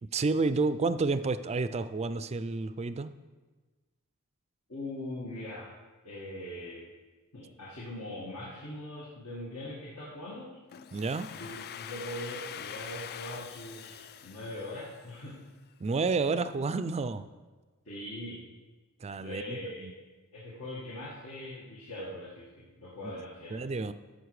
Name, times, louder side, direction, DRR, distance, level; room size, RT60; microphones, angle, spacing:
voice 1, 0.0-3.1 10.9-11.3 15.8-17.2 19.0-19.9 23.0-23.1 23.5-23.9, right 3 dB, 30° right, 13 dB, 0.4 m, -30 dB
voice 2, 4.7-5.7 6.0-6.8 7.3-10.5 11.3-15.4 17.9-18.4 19.2-19.9 20.3-23.7, left 1 dB, 70° left, -6 dB, 1.9 m, -41 dB
Domestic sounds home sounds, 10.7-15.5, left 9 dB, 45° left, 0.4 m, -44 dB
13.0 x 6.5 x 4.8 m, 1.3 s
head